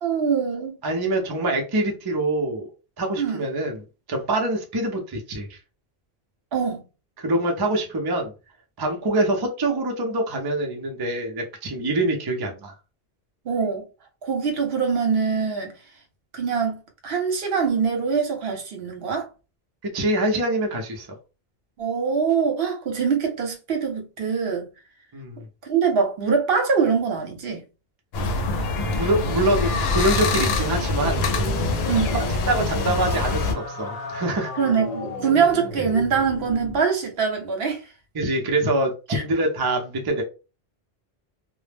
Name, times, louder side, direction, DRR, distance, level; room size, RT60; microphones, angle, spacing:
voice 1, 0.0-0.8 3.2-3.5 6.5-6.8 13.5-13.8 14.2-15.7 16.3-19.3 21.8-24.7 25.6-27.6 31.9-32.2 34.6-37.8 39.1-39.2, right 6 dB, 70° right, 0.9 m, -23 dB
voice 2, 0.8-2.7 3.0-5.6 7.2-8.3 8.8-12.7 19.8-21.1 25.1-25.4 28.6-28.7 28.9-31.3 32.3-34.5 38.1-40.2, right 1 dB, 30° right, 0.4 m, -25 dB
sound 1, 28.1-33.5, left 3 dB, 75° left, 0.8 m, -24 dB
sound 2, 30.9-36.8, left 2 dB, 50° left, 0.5 m, -34 dB
2.1 x 2.0 x 3.2 m
omnidirectional pair, 1.1 m